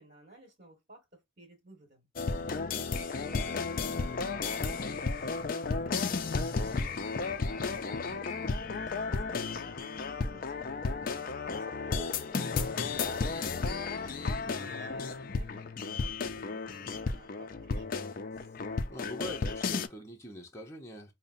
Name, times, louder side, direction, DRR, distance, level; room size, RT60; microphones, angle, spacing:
voice 1, 0.0-2.1 2.9-10.8 11.3-18.1, right 2 dB, 45° right, 1.6 m, -55 dB
sound 1, 2.2-19.9, left 4 dB, 45° left, 0.4 m, -33 dB
voice 2, 2.3-2.6 11.0-11.3 18.9-21.1, equal, 15° left, 0.7 m, -44 dB
5.5 x 2.1 x 2.6 m
head